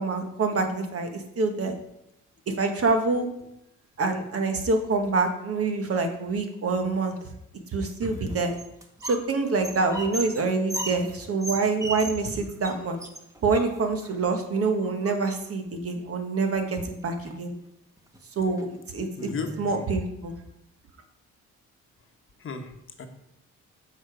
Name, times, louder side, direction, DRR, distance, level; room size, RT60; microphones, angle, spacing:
voice 1, 0.0-1.7 2.6-3.3 4.0-7.2 7.7-8.5 9.0-13.0 13.4-17.5 18.4-19.3 19.6-20.3, right 3 dB, 50° right, 5 dB, 1.3 m, -26 dB
sound 1, 8.1-9.3 9.5-12.3 12.6-12.7 13.0-14.1 14.8-15.5 16.6-16.7 17.0-17.5 18.0-18.2 18.6-18.7 19.2-20.0, right 1 dB, 10° right, 1.1 m, -37 dB
voice 2, 19.1-19.8 22.4-23.1, left 5 dB, 45° left, 5 dB, 1.1 m, -35 dB
7.9 x 5.1 x 5.0 m, 0.81 s
cardioid pair, 90°, 30 cm